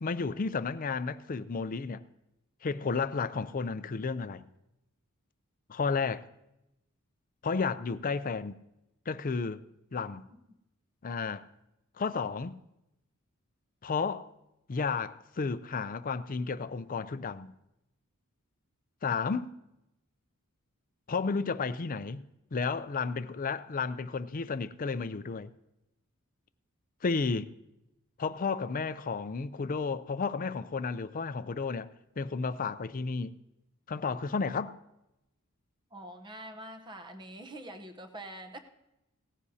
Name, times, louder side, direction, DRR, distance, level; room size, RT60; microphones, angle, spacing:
voice 1, 0.0-2.0 2.6-4.4 5.7-6.3 7.4-8.6 9.1-9.6 9.9-10.2 11.0-11.4 12.0-12.6 13.8-14.3 14.7-17.5 19.0-19.5 21.1-22.2 22.5-25.5 27.0-27.5 28.2-31.9 32.2-33.3 33.9-34.7, left 4 dB, 40° left, 0.5 m, -32 dB
voice 2, 35.9-38.6, right 1 dB, 20° right, 0.8 m, -45 dB
18.0 x 14.5 x 2.8 m
head